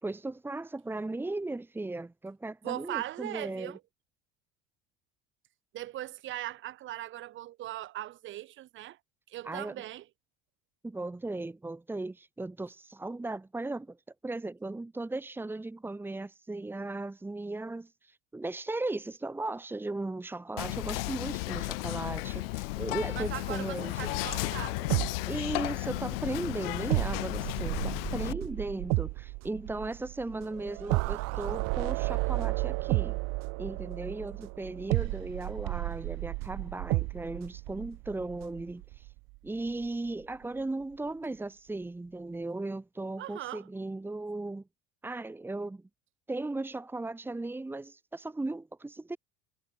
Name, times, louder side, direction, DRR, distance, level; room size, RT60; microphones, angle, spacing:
voice 1, 0.0-3.8 9.4-9.8 10.8-14.0 14.2-24.1 25.3-33.2 33.6-39.1 39.4-44.6 45.0-45.8 46.3-49.2, right 2 dB, 5° right, 3.0 m, -37 dB
voice 2, 2.6-3.8 5.7-9.0 9.3-10.0 23.1-24.8 43.2-43.7, right 14 dB, 40° right, 8.0 m, -39 dB
Whispering, 20.6-28.3, left 24 dB, 80° left, 6.3 m, -34 dB
sound 1, 24.1-25.9 26.1-26.2 26.9-39.4 39.7-39.8, right 28 dB, 60° right, 4.9 m, -33 dB
cardioid pair, 150°, 29 cm